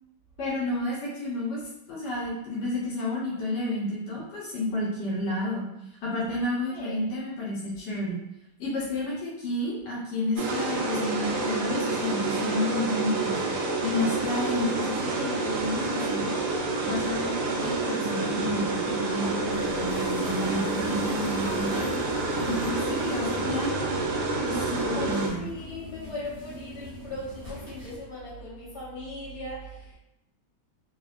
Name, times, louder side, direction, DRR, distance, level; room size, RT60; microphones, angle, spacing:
voice 1, 0.4-1.6 1.9-5.7 6.0-8.2 8.6-13.4 13.8-16.4 16.8-21.8 22.4-23.8 24.4-25.4, left 1 dB, 80° left, -4 dB, 1.3 m, -31 dB
sound 1, 10.4-25.3, right 3 dB, 75° right, 1.1 m, -28 dB
sound 2, 19.2-28.0, left 1 dB, 45° right, 0.9 m, -41 dB
voice 2, 24.7-30.0, left 2 dB, 45° left, -7 dB, 1.3 m, -38 dB
3.2 x 2.0 x 2.4 m, 0.86 s
omnidirectional pair, 1.8 m